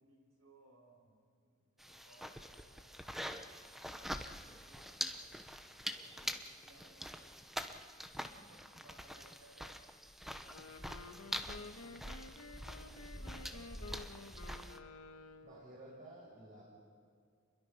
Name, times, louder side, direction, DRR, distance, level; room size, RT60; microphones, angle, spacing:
voice 1, 0.0-3.8 4.2-7.4 7.7-12.5 12.9-14.5 15.4-15.9, right 1 dB, 85° right, 0 dB, 7.0 m, -65 dB
sound 1, 1.8-14.8, equal, ahead, 0.9 m, -45 dB
Wind instrument woodwind instrument, 10.5-15.7, left 3 dB, 85° left, 1.6 m, -52 dB
voice 2, 13.2-13.7 15.1-16.6, right 1 dB, 40° right, -5 dB, 5.7 m, -55 dB
29.0 x 22.0 x 5.8 m, 2.2 s
head